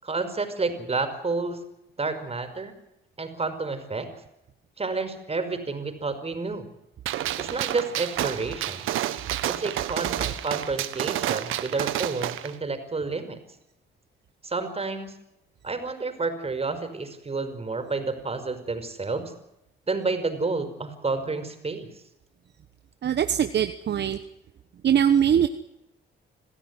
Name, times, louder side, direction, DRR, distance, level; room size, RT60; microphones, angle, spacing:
voice 1, 0.0-1.6 2.0-2.7 3.2-4.1 4.8-6.7 7.4-8.8 9.5-13.4 14.4-15.1 15.6-19.3 19.9-21.9, right 3 dB, 30° right, 9 dB, 5.2 m, -30 dB
Gunshot gunfire, 7.1-12.5, right 13 dB, 85° right, 1.5 m, -30 dB
voice 2, 23.0-24.2 24.8-25.5, right 9 dB, 60° right, 9 dB, 1.3 m, -22 dB
28.0 x 15.5 x 9.8 m, 0.87 s
cardioid pair, 90°, 20 cm